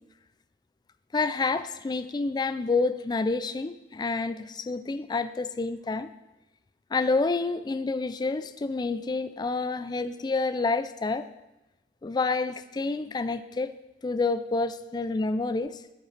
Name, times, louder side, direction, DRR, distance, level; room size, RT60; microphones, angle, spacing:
voice 1, 1.1-6.1 6.9-11.3 12.0-13.7 14.0-15.8, left 3 dB, 25° left, 12 dB, 0.3 m, -28 dB
12.5 x 5.6 x 3.3 m, 0.98 s
head